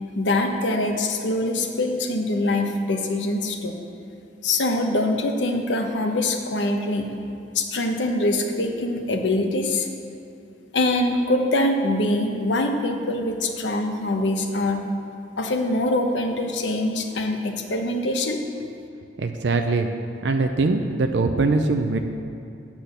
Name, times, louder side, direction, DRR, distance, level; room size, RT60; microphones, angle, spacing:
voice 1, 0.1-3.8 4.4-7.1 7.5-9.9 10.7-14.8 15.4-18.4, left 1 dB, 90° left, 4 dB, 1.0 m, -24 dB
voice 2, 19.2-19.9 20.2-22.0, right 3 dB, 70° right, 5 dB, 0.5 m, -22 dB
10.0 x 5.9 x 6.8 m, 2.6 s
head